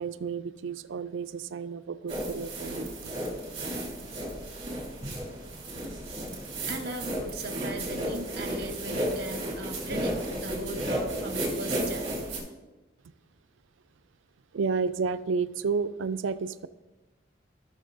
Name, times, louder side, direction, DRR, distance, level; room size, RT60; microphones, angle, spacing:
voice 1, 0.0-3.1 14.5-16.7, right 5 dB, 75° right, 13 dB, 0.4 m, -31 dB
sound 1, 2.1-12.4, right 1 dB, 30° right, 2.9 m, -33 dB
voice 2, 6.1-6.4 6.7-12.3, right 2 dB, 50° right, 5 dB, 1.0 m, -39 dB
14.5 x 6.5 x 2.6 m, 1.1 s
head